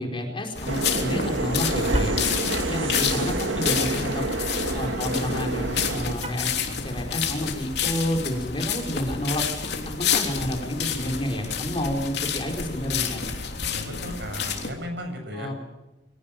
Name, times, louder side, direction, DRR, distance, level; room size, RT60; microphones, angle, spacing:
voice 1, 0.0-2.2 2.7-4.3 4.7-9.4 9.7-13.3 15.3-15.5, equal, 30° left, 1 dB, 4.7 m, -30 dB
sound 1, 0.5-14.7, left 6 dB, 60° left, 3.4 m, -29 dB
sound 2, 0.7-6.2, right 2 dB, 90° right, 2.0 m, -28 dB
Car, 1.8-2.3 6.1-6.7, right 3 dB, 35° right, 2.8 m, -39 dB
voice 2, 13.6-15.5, equal, 60° right, 6 dB, 6.8 m, -35 dB
24.5 x 17.5 x 9.2 m, 1.0 s
head